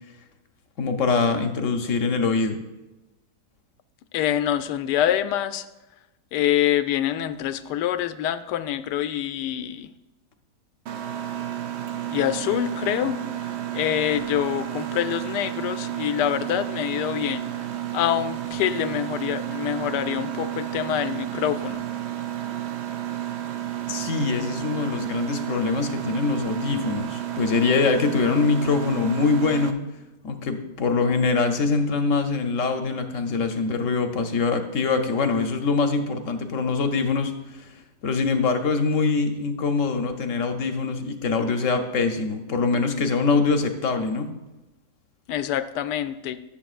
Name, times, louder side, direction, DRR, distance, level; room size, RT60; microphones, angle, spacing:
voice 1, 0.8-2.6 23.9-29.8 30.2-37.7 38.0-44.3, left 4 dB, 60° left, 6 dB, 1.0 m, -23 dB
voice 2, 4.1-5.6 6.3-9.9 12.1-13.2 13.7-21.8 45.3-46.4, left 11 dB, 80° left, 12 dB, 1.2 m, -26 dB
Mechanisms, 10.9-29.7, right 12 dB, 80° right, 0.6 m, -31 dB
19.0 x 7.1 x 2.4 m, 1.0 s
omnidirectional pair, 1.8 m